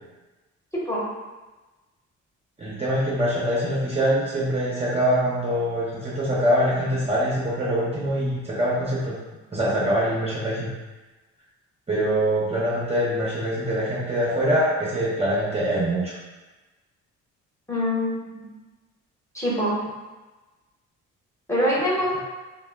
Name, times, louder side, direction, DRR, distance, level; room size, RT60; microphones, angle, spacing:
voice 1, 2.6-9.2 9.5-10.7 11.9-16.1, equal, 20° right, -8 dB, 0.6 m, -24 dB
voice 2, 17.7-18.1 18.4-18.5 19.3-19.7 21.5-22.2, equal, 10° left, -7 dB, 0.9 m, -24 dB
2.2 x 2.0 x 3.3 m, 1.2 s
cardioid pair, 90°, 30 cm